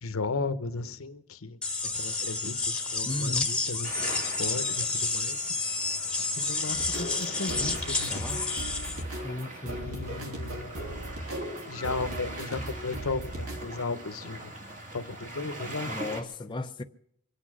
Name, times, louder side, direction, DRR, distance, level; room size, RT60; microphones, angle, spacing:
voice 1, 0.0-1.6 1.9-5.5 6.2-8.5 9.8-10.7 11.7-14.5 14.9-16.0 16.5-16.6, left 3 dB, 75° left, 0.9 m, -35 dB
sound 1, 1.6-9.0, left 3 dB, 5° left, 1.2 m, -30 dB
voice 2, 3.0-3.5 9.2-9.8 15.9-16.8, left 2 dB, 20° left, 0.5 m, -35 dB
sound 2, 3.8-16.2, right 1 dB, 40° right, 2.2 m, -42 dB
sound 3, 6.7-13.7, right 1 dB, 85° right, 2.7 m, -38 dB
24.0 x 8.5 x 6.2 m
head